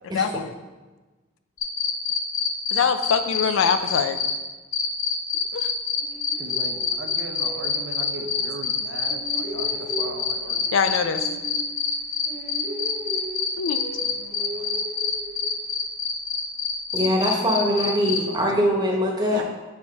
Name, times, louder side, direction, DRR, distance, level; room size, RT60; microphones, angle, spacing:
voice 1, 0.0-0.5 2.7-4.2 5.5-5.7 10.7-11.3 13.6-13.8, left 6 dB, 90° left, 10 dB, 0.4 m, -23 dB
sound 1, 1.6-4.3 4.7-18.2, left 6 dB, 45° left, 0.6 m, -25 dB
sound 2, 6.0-8.7 9.0-12.0 12.2-15.8, equal, 85° right, 1.5 m, -38 dB
voice 2, 6.4-10.8 13.9-14.8 17.6-19.0 19.3-19.4, right 3 dB, 65° right, 5 dB, 0.5 m, -39 dB
voice 3, 16.9-19.4, equal, 20° right, 0 dB, 0.9 m, -22 dB
5.0 x 4.1 x 4.6 m, 1.2 s
head